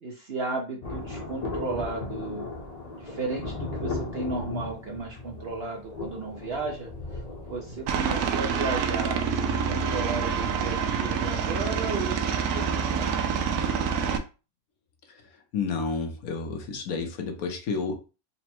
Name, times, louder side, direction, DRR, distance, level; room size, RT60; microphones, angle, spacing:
voice 1, 0.0-2.5 3.0-7.2 7.5-12.3 12.5-13.6, right 3 dB, 55° right, 1 dB, 0.7 m, -34 dB
Thunder, 0.8-12.8 13.1-13.2, left 3 dB, 35° left, 0.8 m, -38 dB
Aircraft, 7.9-14.2, right 6 dB, 80° right, 1.1 m, -27 dB
voice 2, 15.5-17.9, left 4 dB, 70° left, 4 dB, 1.2 m, -30 dB
4.1 x 2.1 x 4.3 m, 0.32 s
omnidirectional pair, 1.6 m